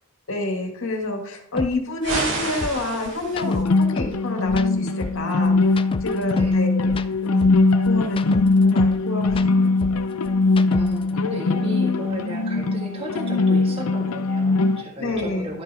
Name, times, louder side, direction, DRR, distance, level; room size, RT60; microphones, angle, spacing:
voice 1, 0.3-5.5 6.0-6.9 7.2-9.7 15.0-15.6, left 2 dB, 60° left, 2 dB, 2.0 m, -28 dB
sound 1, 1.6-1.7 2.1-2.3 2.6-4.2 4.5-6.6 6.9-9.0 9.3-11.1, left 3 dB, 25° left, 0.3 m, -31 dB
sound 2, 2.0-3.6, right 3 dB, 60° right, 2.2 m, -29 dB
sound 3, 3.4-14.8, left 3 dB, 80° left, 0.6 m, -21 dB
voice 2, 10.7-15.6, equal, 25° right, -1 dB, 1.8 m, -34 dB
12.0 x 5.5 x 3.5 m, 0.74 s
head